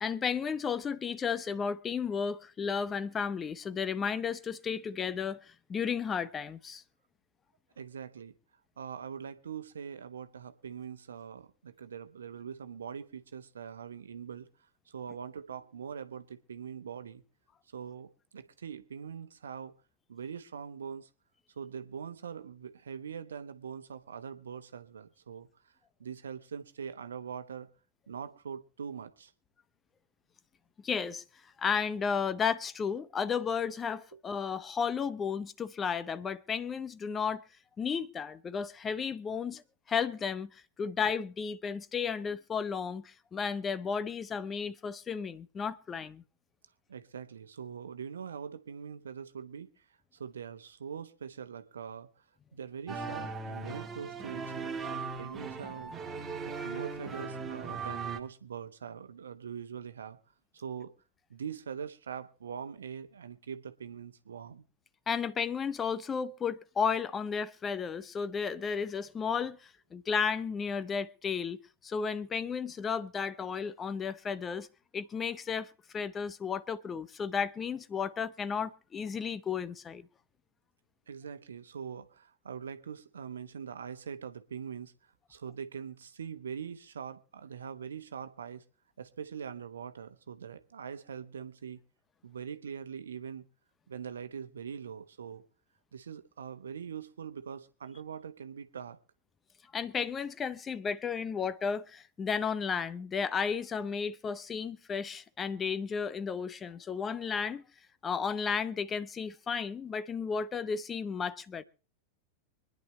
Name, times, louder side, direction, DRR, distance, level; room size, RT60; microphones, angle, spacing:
voice 1, 0.0-6.8 30.8-31.2 31.6-37.4 37.8-39.6 39.9-46.2 65.1-74.7 74.9-80.1 99.7-107.6 108.0-111.6, left 6 dB, 20° left, 0.7 m, -33 dB
voice 2, 7.8-8.3 8.8-14.5 14.9-17.2 17.7-19.7 20.1-21.1 21.5-25.7 26.0-27.7 28.1-29.3 46.9-49.8 50.1-52.2 52.5-55.9 56.4-60.2 60.5-60.9 61.3-64.6 81.1-88.6 89.0-91.8 92.2-93.5 93.9-95.4 95.9-99.0, right 7 dB, 70° right, 1.1 m, -43 dB
sound 1, 52.9-58.2, right 4 dB, 20° right, 1.9 m, -38 dB
25.0 x 10.5 x 3.2 m
figure-of-eight pair, 90°, 0 cm